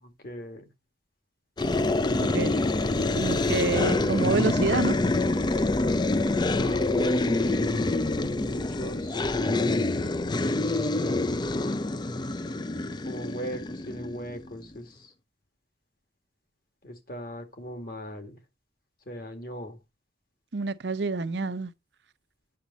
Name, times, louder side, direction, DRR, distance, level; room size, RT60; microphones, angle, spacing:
voice 1, 0.0-0.6 6.5-8.1 8.4-9.3 9.6-10.2 13.0-15.1 16.8-18.4 19.1-19.8, equal, 55° left, 2.1 m, -40 dB
sound 1, 1.6-14.5, left 2 dB, 25° left, 0.4 m, -26 dB
voice 2, 3.2-5.0 20.5-21.7, right 3 dB, 70° right, 0.7 m, -27 dB
8.7 x 6.4 x 4.0 m
head